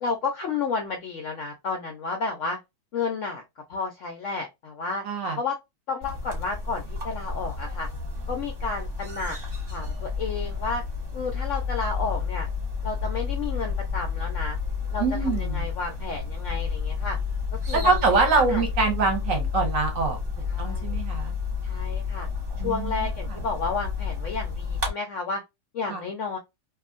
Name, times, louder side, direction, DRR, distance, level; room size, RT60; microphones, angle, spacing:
voice 1, 0.0-2.6 2.9-3.4 3.7-5.0 5.4-5.6 5.9-7.9 8.3-9.4 9.7-10.8 11.1-12.5 12.8-14.6 14.9-17.2 17.7-18.6 20.5-21.0 21.6-22.3 22.6-25.4 25.7-26.4, left 4 dB, 70° left, 0.7 m, -31 dB
voice 2, 5.0-5.4 15.0-15.6 17.8-20.2 20.6-21.4 22.6-22.9 25.9-26.0, right 4 dB, 60° right, 1.1 m, -24 dB
sound 1, 6.0-24.9, left 5 dB, 35° right, 1.1 m, -30 dB
2.8 x 2.4 x 2.4 m
omnidirectional pair, 1.8 m